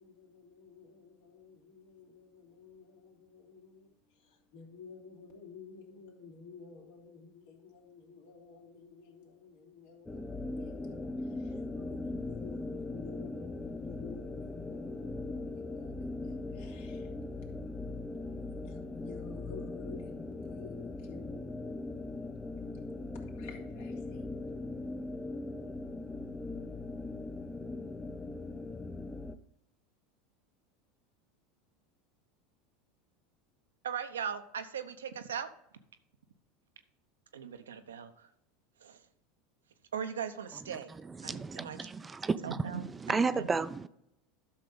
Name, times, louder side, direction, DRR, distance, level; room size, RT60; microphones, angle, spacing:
voice 1, 0.0-23.0 23.3-24.9, left 4 dB, 70° left, 2.9 m, -52 dB
sound 1, 10.1-29.4, left 2 dB, 15° left, 0.7 m, -40 dB
voice 2, 33.8-35.5 37.3-38.3 38.8-39.0 39.9-40.9 41.2-41.9 42.4-43.5, right 7 dB, 80° right, 0.8 m, -39 dB
voice 3, 41.1-43.9, right 4 dB, 20° right, 0.5 m, -33 dB
12.0 x 6.6 x 4.0 m
hypercardioid pair, 85°, 0 cm